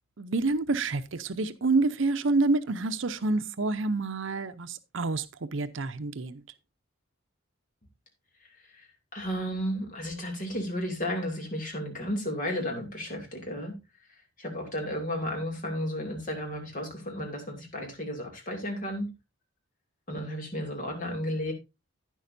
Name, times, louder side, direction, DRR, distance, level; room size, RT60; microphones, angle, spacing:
voice 1, 0.2-6.4, right 3 dB, 65° right, 0.7 m, -28 dB
voice 2, 9.1-13.7 14.4-19.1 20.1-21.5, equal, 40° left, 2.6 m, -33 dB
11.0 x 9.9 x 2.6 m
head